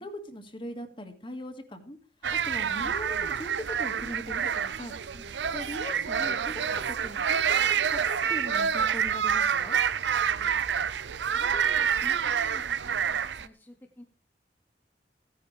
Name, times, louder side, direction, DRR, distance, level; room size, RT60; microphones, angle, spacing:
voice 1, 0.0-2.0 2.5-4.9 5.5-7.6 7.9-9.8, left 1 dB, 30° left, 6 dB, 1.9 m, -40 dB
sound 1, 2.2-13.5, right 7 dB, 85° right, 0.6 m, -27 dB
voice 2, 5.1-5.6 10.1-10.9 11.2-14.0, left 1 dB, 15° left, 1 dB, 1.1 m, -50 dB
15.5 x 10.5 x 3.3 m, 0.37 s
head